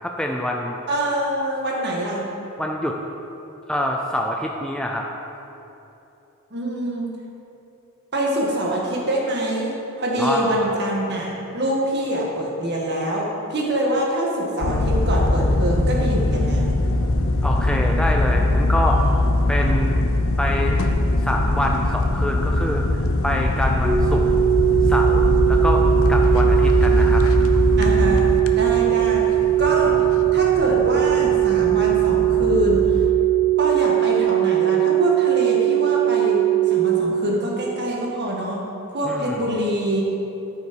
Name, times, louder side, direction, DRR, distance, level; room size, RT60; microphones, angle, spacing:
voice 1, 0.0-0.8 2.6-3.0 3.7-5.1 10.2-10.7 17.4-19.0 19.5-20.1 20.4-20.8 21.2-24.3 24.8-27.3 27.5-27.6 39.0-39.4, left 1 dB, 5° left, 0 dB, 0.4 m, -26 dB
voice 2, 0.9-2.3 6.5-7.1 8.1-9.7 10.0-16.7 27.8-28.2 28.5-29.3 29.6-30.0 30.3-33.0 33.6-38.6 38.9-40.0, right 1 dB, 50° right, -2 dB, 1.7 m, -25 dB
sound 1, 14.6-33.1, left 2 dB, 60° left, 0.6 m, -21 dB
sound 2, 23.8-37.0, right 15 dB, 15° right, 1.3 m, -19 dB
13.0 x 5.7 x 4.7 m, 3.0 s
head